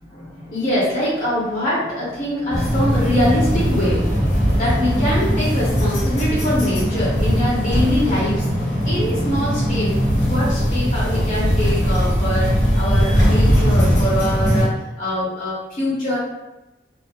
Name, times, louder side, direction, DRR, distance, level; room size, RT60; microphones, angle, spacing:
voice 1, 0.1-8.5 8.8-9.9 10.3-16.2, left 1 dB, 45° left, -7 dB, 0.7 m, -24 dB
sound 1, 2.5-14.6, equal, 75° left, 1.2 m, -19 dB
2.7 x 2.1 x 2.3 m, 0.98 s
head